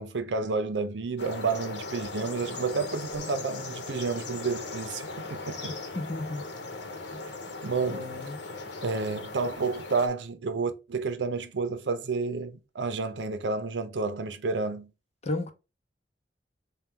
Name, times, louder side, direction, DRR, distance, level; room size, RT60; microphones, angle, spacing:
voice 1, 0.0-5.7 7.6-8.1 8.8-14.9, right 4 dB, 90° right, 0.6 m, -30 dB
sound 1, 1.2-10.1, left 3 dB, 80° left, 0.9 m, -39 dB
voice 2, 6.0-6.5 7.1-7.3 7.9-8.4 15.2-15.5, left 2 dB, 40° left, 0.7 m, -33 dB
4.3 x 2.3 x 3.5 m
head